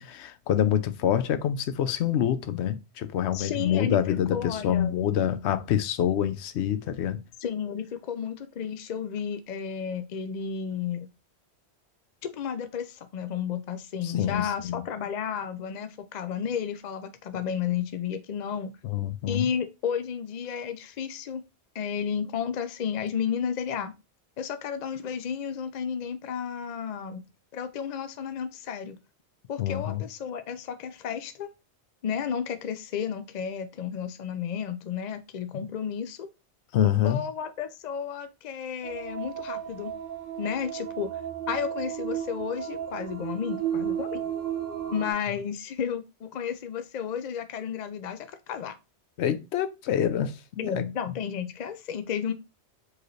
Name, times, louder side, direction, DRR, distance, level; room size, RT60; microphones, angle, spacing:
voice 1, 0.0-7.2 14.0-14.9 18.8-19.5 29.6-30.0 36.7-37.2 49.2-50.9, left 10 dB, 80° left, 0.9 m, -26 dB
voice 2, 3.3-4.9 7.4-11.1 12.2-18.7 19.3-21.4 21.7-23.9 24.4-27.2 27.5-29.0 29.5-31.5 32.0-36.3 37.0-39.9 40.4-41.2 41.5-44.2 44.9-48.7 50.6-52.3, left 7 dB, 55° left, 0.5 m, -32 dB
sound 1, 38.8-45.1, right 10 dB, 60° right, 0.9 m, -33 dB
4.6 x 3.1 x 3.1 m
omnidirectional pair, 1.1 m